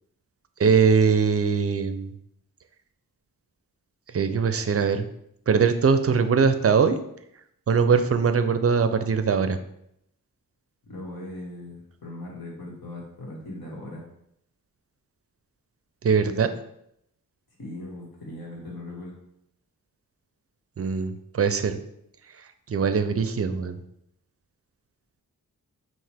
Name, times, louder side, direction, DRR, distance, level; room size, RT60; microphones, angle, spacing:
voice 1, 0.6-2.1 4.1-5.1 5.5-7.0 7.7-9.6 16.0-16.5 20.8-21.8 22.7-23.8, right 6 dB, 40° right, 10 dB, 0.4 m, -21 dB
voice 2, 10.8-14.0 17.6-19.2, left 1 dB, 80° left, -3 dB, 1.5 m, -39 dB
5.7 x 2.5 x 3.4 m, 0.76 s
cardioid pair, 65°, 36 cm